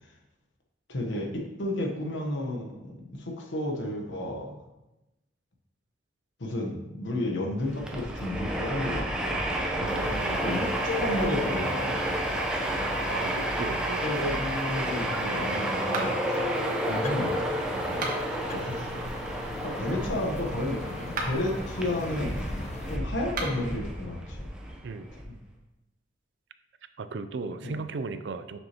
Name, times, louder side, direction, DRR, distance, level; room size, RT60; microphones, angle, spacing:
voice 1, 0.9-4.5 6.4-9.2 10.4-12.0 14.0-16.4 16.8-18.2 18.5-19.0 19.6-22.5 22.9-24.5 25.3-25.4 27.6-27.8, left 1 dB, 80° left, 1 dB, 1.1 m, -32 dB
Train, 7.6-25.2, right 1 dB, 5° right, 0.7 m, -31 dB
voice 2, 9.8-10.5 13.1-14.1 19.9-20.2 24.8-25.1 27.0-28.6, right 4 dB, 70° right, 11 dB, 0.4 m, -36 dB
sound 1, 9.9-23.0, left 4 dB, 35° left, 0.3 m, -42 dB
sound 2, 15.9-16.4 17.9-18.4 21.0-21.5 23.2-23.7, right 2 dB, 50° right, 1.1 m, -35 dB
6.4 x 6.2 x 2.9 m, 1.0 s
head